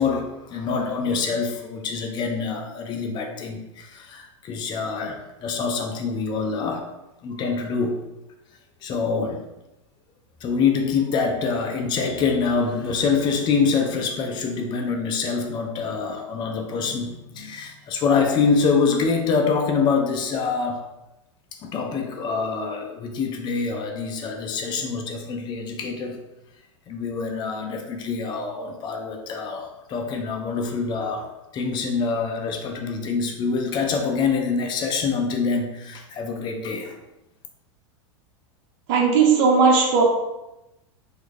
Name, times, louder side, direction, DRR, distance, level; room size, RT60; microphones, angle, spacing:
voice 1, 0.0-6.9 7.2-8.0 8.8-9.4 10.4-20.8 21.6-26.2 26.9-31.3 31.5-37.0, left 5 dB, 30° left, 3 dB, 0.4 m, -25 dB
voice 2, 38.9-40.0, right 5 dB, 55° right, 0 dB, 0.9 m, -17 dB
3.0 x 2.3 x 3.2 m, 0.95 s
hypercardioid pair, 115°, 16 cm